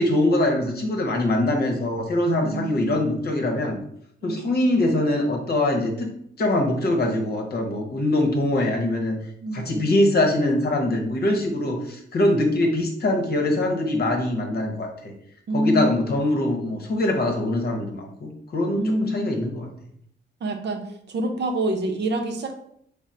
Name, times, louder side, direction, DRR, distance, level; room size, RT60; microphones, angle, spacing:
voice 1, 0.0-3.8 4.2-9.2 9.5-15.1 15.5-19.7, left 1 dB, 50° left, 3 dB, 0.8 m, -23 dB
voice 2, 2.4-3.0 4.2-4.5 9.4-10.1 15.5-16.1 18.8-19.4 20.4-20.8 21.1-22.5, right 1 dB, 60° right, 4 dB, 0.6 m, -27 dB
3.7 x 2.0 x 4.2 m, 0.70 s
cardioid pair, 110°, 21 cm